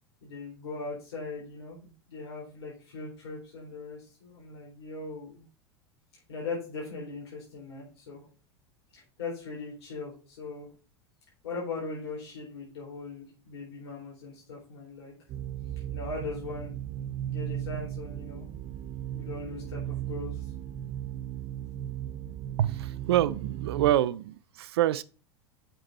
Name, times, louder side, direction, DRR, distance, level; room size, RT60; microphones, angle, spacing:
voice 1, 0.2-5.4 6.3-8.2 8.9-10.7 11.4-15.1 15.9-16.7 17.3-18.5 19.0-20.5, left 3 dB, 70° left, 4.1 m, -39 dB
sound 1, 15.3-23.9, right 11 dB, 40° right, 0.7 m, -36 dB
voice 2, 22.6-25.0, right 13 dB, 65° right, 0.4 m, -26 dB
7.9 x 5.8 x 4.3 m
figure-of-eight pair, 85°, 14 cm